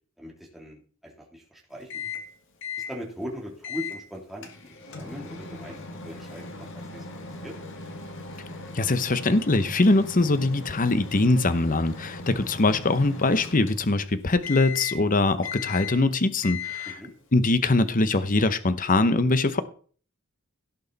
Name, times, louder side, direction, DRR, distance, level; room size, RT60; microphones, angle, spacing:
voice 1, 0.2-2.0 2.9-5.8 6.0-7.0 7.4-7.5 17.0-17.1, equal, ahead, -3 dB, 3.1 m, -40 dB
Microwave oven, 1.9-2.3 2.6-2.9 3.6-4.0 4.4-14.1 14.4-15.1 15.4-16.1 16.4-17.1, left 5 dB, 60° left, 1.8 m, -38 dB
voice 2, 8.7-16.9 17.3-19.6, left 2 dB, 40° left, 12 dB, 0.9 m, -22 dB
17.0 x 6.5 x 4.1 m, 0.43 s
head